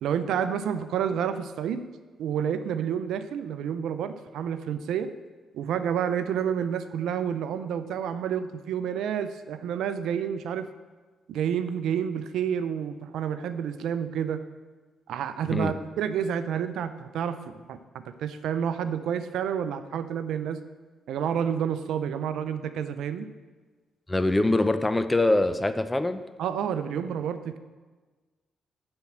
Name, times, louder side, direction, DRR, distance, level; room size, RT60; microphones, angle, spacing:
voice 1, 0.0-1.8 2.2-5.1 5.5-10.7 11.3-14.4 15.1-20.6 21.1-23.3 26.4-27.6, right 8 dB, 80° right, 11 dB, 0.5 m, -29 dB
voice 2, 24.1-26.2, left 2 dB, 15° left, 11 dB, 0.7 m, -23 dB
9.6 x 4.4 x 7.3 m, 1.4 s
supercardioid pair, 55°, 0 cm